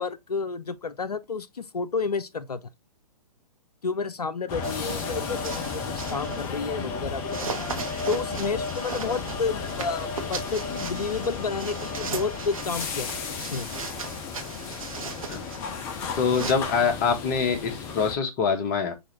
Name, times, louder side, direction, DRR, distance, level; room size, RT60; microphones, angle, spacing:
voice 1, 0.0-2.7 3.8-7.5 8.1-13.1 13.4-13.7, left 4 dB, 75° left, 0.5 m, -31 dB
sound 1, 4.5-18.2, left 5 dB, 10° left, 0.3 m, -33 dB
sound 2, 4.6-6.6 7.2-16.5, right 5 dB, 60° right, 1.0 m, -38 dB
voice 2, 16.2-18.9, left 5 dB, 30° left, 0.9 m, -24 dB
6.0 x 2.6 x 2.9 m
figure-of-eight pair, 120°, 20 cm